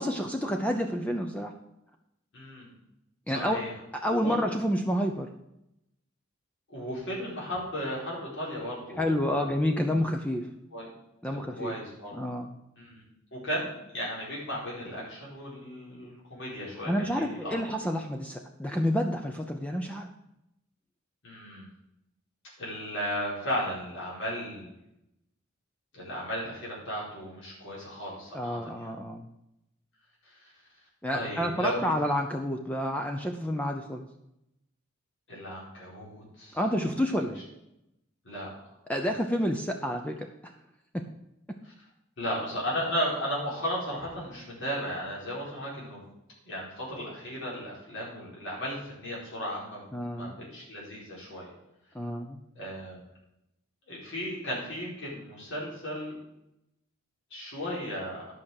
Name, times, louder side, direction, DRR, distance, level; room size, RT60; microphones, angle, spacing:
voice 1, 0.0-1.5 3.3-3.6 3.9-5.3 9.0-10.5 11.2-11.8 12.1-12.5 16.9-20.1 28.3-29.2 31.0-34.1 36.5-37.4 38.9-40.5 40.9-41.1 49.9-50.4 51.9-52.4, equal, 5° left, 4 dB, 0.6 m, -29 dB
voice 2, 2.3-2.7 3.3-3.7 4.2-4.4 6.7-9.6 10.7-10.9 11.3-12.1 12.8-13.0 13.3-16.9 17.2-17.6 21.2-21.7 22.6-24.7 25.9-28.9 31.1-31.9 35.3-36.6 38.2-38.5 41.6-41.7 42.2-46.0 46.4-51.5 52.5-53.0 53.9-56.2 57.3-58.2, equal, 65° left, -5 dB, 4.5 m, -35 dB
11.0 x 5.9 x 6.5 m, 0.85 s
head